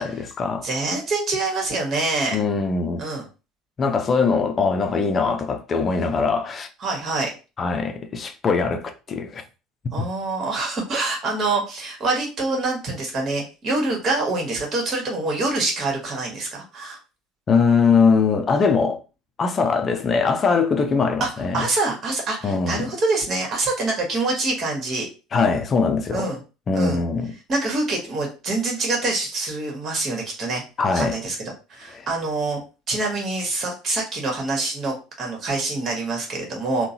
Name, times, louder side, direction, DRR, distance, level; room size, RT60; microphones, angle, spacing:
voice 1, 0.0-0.7 2.3-3.0 3.8-6.7 7.6-9.4 10.0-10.1 17.5-19.0 19.4-21.7 22.4-22.9 25.3-26.3 26.7-27.3 30.8-31.2 32.0-32.1, left 5 dB, 35° left, 0.6 m, -21 dB
voice 2, 0.6-2.4 3.0-3.3 6.8-7.3 9.9-17.0 21.2-21.3 21.5-25.1 26.1-26.4 26.7-27.0 27.5-30.6 30.9-32.6 32.9-36.9, right 3 dB, 40° right, 1.5 m, -25 dB
3.7 x 2.3 x 2.8 m
figure-of-eight pair, 65°, 0 cm